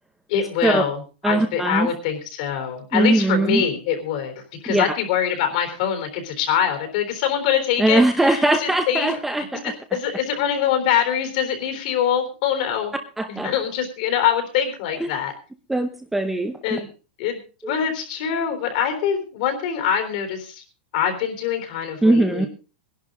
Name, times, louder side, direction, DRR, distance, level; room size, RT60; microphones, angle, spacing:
voice 1, 0.3-1.0 1.2-9.2 9.9-12.9 13.3-15.3 16.6-16.9 17.2-20.6 20.9-22.5, left 8 dB, 50° left, 7 dB, 3.7 m, -24 dB
voice 2, 1.2-1.9 2.9-3.6 4.7-4.8 7.8-10.0 13.2-13.5 15.0-15.1 15.7-16.8 17.6-17.7 22.0-22.5, right 2 dB, 5° right, 6 dB, 0.8 m, -20 dB
20.0 x 11.0 x 3.8 m, 0.34 s
supercardioid pair, 170°, 5 cm